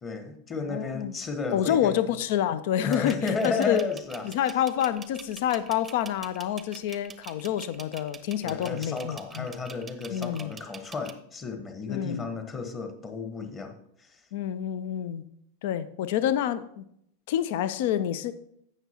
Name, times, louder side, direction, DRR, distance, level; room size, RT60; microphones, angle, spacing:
voice 1, 0.0-2.1 2.8-4.3 8.4-14.2, left 4 dB, 20° left, 7 dB, 1.3 m, -33 dB
voice 2, 0.5-1.1 1.5-3.9 4.2-9.5 10.1-10.5 11.9-12.2 14.3-15.2 15.6-16.8 17.3-18.3, left 10 dB, 50° left, 15 dB, 0.5 m, -28 dB
sound 1, 2.8-11.1, right 6 dB, 15° right, 0.7 m, -45 dB
15.5 x 6.2 x 2.9 m, 0.73 s
figure-of-eight pair, 90°, 0 cm